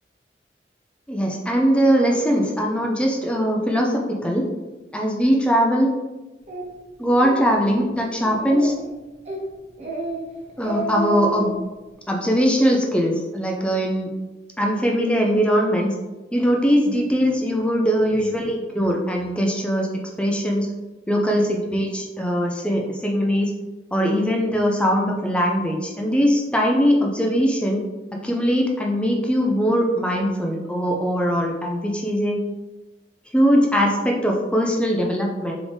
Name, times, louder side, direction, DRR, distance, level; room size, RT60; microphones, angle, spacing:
voice 1, 1.1-4.4 4.9-5.9 7.0-8.7 10.6-11.5 12.1-14.1 14.6-15.9 16.3-19.9 20.2-20.7 21.1-23.5 23.9-27.8 28.2-32.4 33.3-35.5, equal, 5° left, 0 dB, 0.4 m, -21 dB
Speech, 6.5-6.6 7.1-7.4 7.8-7.9 8.2-8.8 9.3-9.4 9.8-10.2 10.5-11.5, right 2 dB, 35° right, 0.8 m, -29 dB
3.5 x 3.4 x 3.9 m, 1.1 s
head